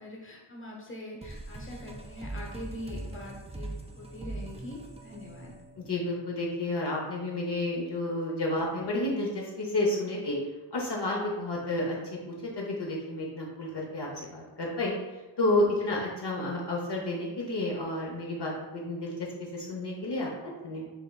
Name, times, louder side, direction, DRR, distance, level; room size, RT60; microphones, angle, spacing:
voice 1, 0.0-5.6 15.8-15.9, left 1 dB, 25° left, -2 dB, 1.1 m, -43 dB
sound 1, 1.2-6.5, right 2 dB, 15° right, 0.4 m, -41 dB
voice 2, 5.8-10.4 10.7-12.0 12.3-15.0 15.4-19.1 19.5-20.8, left 1 dB, 55° left, -3 dB, 0.9 m, -31 dB
5.7 x 3.4 x 2.3 m, 1.2 s
wide cardioid pair, 70°, 49 cm